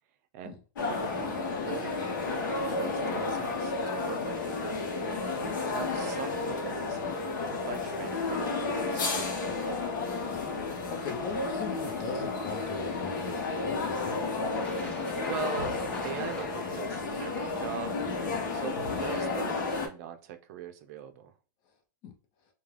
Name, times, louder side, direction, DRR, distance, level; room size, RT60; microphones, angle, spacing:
sound 1, 0.8-19.9, left 3 dB, 80° left, 0.8 m, -32 dB
voice 1, 0.8-2.2 2.6-4.8 5.7-7.0 7.5-9.4 15.1-18.0 18.5-21.3, right 8 dB, 55° right, 0.4 m, -41 dB
voice 2, 5.4-5.8 10.3-14.4 22.0-22.1, left 5 dB, 40° left, 0.7 m, -40 dB
sound 2, 9.4-16.4, equal, 10° left, 1.2 m, -50 dB
2.3 x 2.2 x 3.2 m
hypercardioid pair, 130°, 10 cm